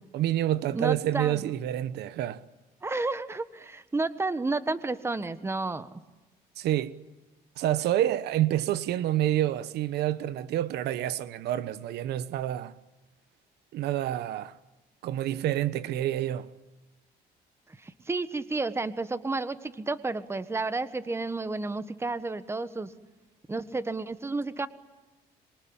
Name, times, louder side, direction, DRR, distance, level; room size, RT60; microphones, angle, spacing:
voice 1, 0.1-2.4 6.6-7.0 7.6-12.7 13.7-14.5 15.0-16.5, right 12 dB, 75° right, 1.1 m, -28 dB
voice 2, 0.7-1.5 2.8-5.9 17.8-22.9 23.5-24.7, right 3 dB, 15° right, 1.4 m, -31 dB
26.5 x 23.5 x 8.9 m
cardioid pair, 110°, 17 cm